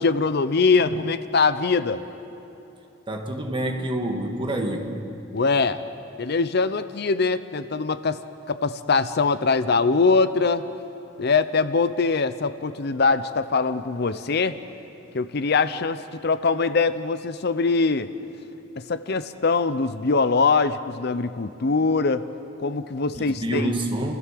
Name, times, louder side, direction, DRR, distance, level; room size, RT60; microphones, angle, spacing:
voice 1, 0.0-2.0 5.3-5.8 6.2-8.2 8.5-10.7 11.2-14.6 15.1-18.1 18.8-22.2 22.6-23.7, left 4 dB, 55° left, 13 dB, 0.6 m, -22 dB
voice 2, 3.1-5.0 23.1-24.2, right 1 dB, 25° right, 2 dB, 2.0 m, -27 dB
30.0 x 15.0 x 7.6 m, 2.9 s
head